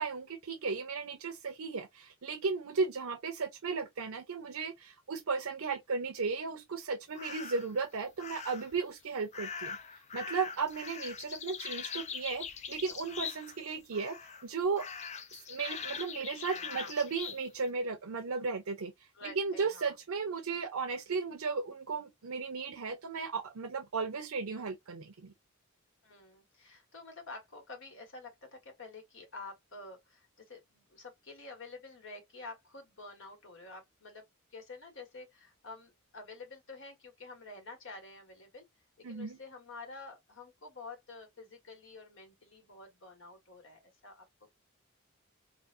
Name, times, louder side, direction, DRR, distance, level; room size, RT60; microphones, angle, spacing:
voice 1, 0.0-9.8 10.1-14.9 15.5-18.9 19.2-25.3 39.0-39.4, right 4 dB, 90° right, 0.6 m, -35 dB
sound 1, 7.1-7.7 8.2-8.8 9.3-13.7 13.9-14.4 14.8-17.4, left 6 dB, 35° left, 0.4 m, -42 dB
voice 2, 16.3-16.9 19.1-19.9 26.0-34.2 34.5-38.7 39.1-44.3, left 3 dB, 65° left, 1.5 m, -49 dB
3.9 x 2.4 x 2.5 m
head